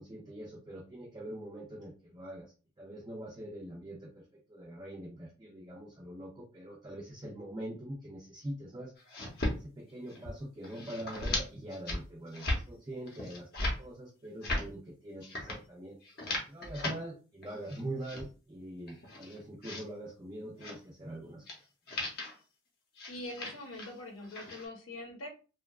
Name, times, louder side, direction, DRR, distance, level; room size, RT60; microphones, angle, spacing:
voice 1, 0.0-8.9 9.6-13.5 13.8-16.0 16.4-21.4, right 1 dB, 20° right, -4 dB, 0.4 m, -43 dB
sound 1, 9.0-9.6 9.9-10.3 10.6-11.4 11.7-12.0 12.3-12.6 13.1-13.8 14.2-14.7 15.2-15.6 16.0-16.9 17.4-18.2 18.8-19.8 20.6-20.8 21.5-21.6 21.9-22.3 23.0-23.9 24.2-24.7, left 1 dB, 50° left, 0.7 m, -36 dB
voice 2, 23.1-25.3, left 1 dB, 80° left, 2 dB, 0.8 m, -43 dB
2.7 x 2.2 x 2.3 m, 0.34 s
head